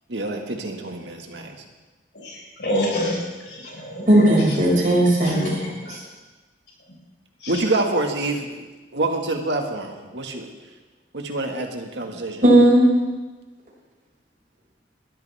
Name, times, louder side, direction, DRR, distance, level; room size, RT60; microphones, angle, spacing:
voice 1, 0.1-1.6 4.3-4.5 5.6-5.7 7.5-8.7 8.9-10.5 11.1-12.4, right 2 dB, 80° right, 3 dB, 1.9 m, -26 dB
voice 2, 2.2-3.2 3.5-4.3 5.2-5.9 7.4-7.5, equal, 70° left, -4 dB, 5.9 m, -27 dB
voice 3, 4.1-5.7 12.4-12.8, right 1 dB, 50° right, -5 dB, 6.0 m, -16 dB
21.0 x 13.5 x 3.6 m, 1.2 s
head